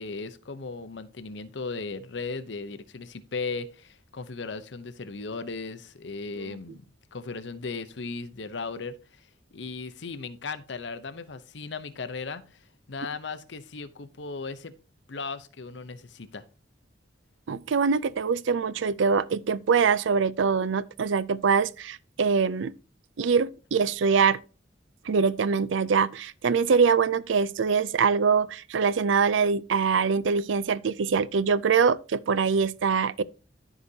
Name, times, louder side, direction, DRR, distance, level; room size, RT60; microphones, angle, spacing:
voice 1, 0.0-6.8 7.1-12.6 12.9-14.7 15.1-16.4, left 4 dB, 65° left, 0.8 m, -37 dB
voice 2, 17.5-22.7 23.2-24.4 25.1-33.2, right 5 dB, 80° right, 0.5 m, -24 dB
13.5 x 5.0 x 2.8 m
head